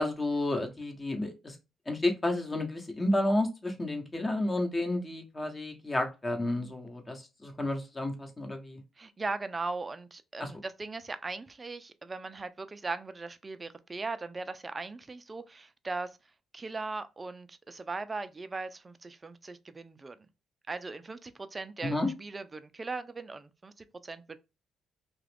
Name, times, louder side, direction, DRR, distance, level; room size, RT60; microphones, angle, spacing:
voice 1, 0.0-1.6 1.9-8.8 10.4-10.5 21.8-22.1, left 1 dB, 25° left, 1.0 m, -31 dB
voice 2, 9.0-16.2 16.5-20.2 20.7-24.4, right 3 dB, 25° right, 0.4 m, -39 dB
2.9 x 2.4 x 3.4 m
cardioid pair, 90°, 0 cm